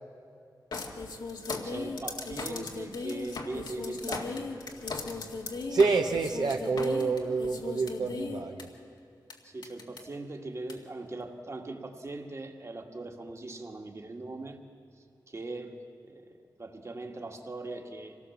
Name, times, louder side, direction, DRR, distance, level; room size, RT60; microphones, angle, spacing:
sound 1, 0.7-8.6 9.3-9.4 9.6-10.0 10.7-10.8, left 3 dB, 90° left, 2.0 m, -37 dB
voice 1, 1.5-4.5 9.4-14.6 15.3-15.8 16.0-16.3 16.6-18.2, right 2 dB, 40° right, 4 dB, 1.9 m, -40 dB
voice 2, 5.7-8.7, right 4 dB, 75° right, 2 dB, 1.1 m, -27 dB
25.5 x 18.0 x 7.3 m, 2.5 s
wide cardioid pair, 95°, 7 cm